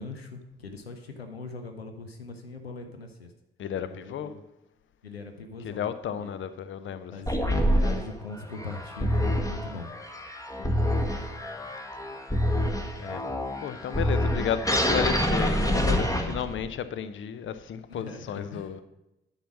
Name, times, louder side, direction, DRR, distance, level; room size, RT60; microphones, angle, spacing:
voice 1, 0.0-3.3 3.8-4.3 5.0-5.9 6.2-6.3 7.1-9.9 18.0-18.7, left 3 dB, 85° left, 6 dB, 0.7 m, -40 dB
voice 2, 3.6-4.3 5.6-7.1 10.6-11.0 13.0-13.2 13.6-18.8, left 8 dB, 40° left, 13 dB, 0.7 m, -33 dB
sound 1, 7.3-16.7, equal, 10° left, 1.4 m, -27 dB
10.0 x 5.7 x 6.0 m, 0.93 s
figure-of-eight pair, 40°, 30 cm